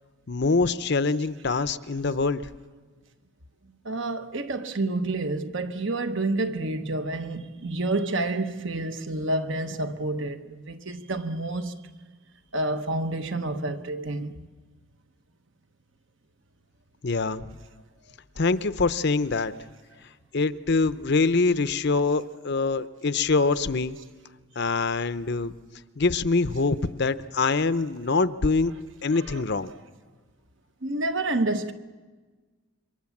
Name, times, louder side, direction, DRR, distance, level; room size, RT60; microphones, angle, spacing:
voice 1, 0.3-2.4 17.0-17.5 18.4-19.5 20.3-24.0 24.6-25.5 26.0-28.7 29.0-29.7, left 3 dB, 50° left, 0.7 m, -24 dB
voice 2, 3.8-11.7 12.5-14.4 29.2-29.4 30.8-31.7, right 2 dB, 60° right, 1.2 m, -29 dB
27.5 x 23.5 x 7.3 m
head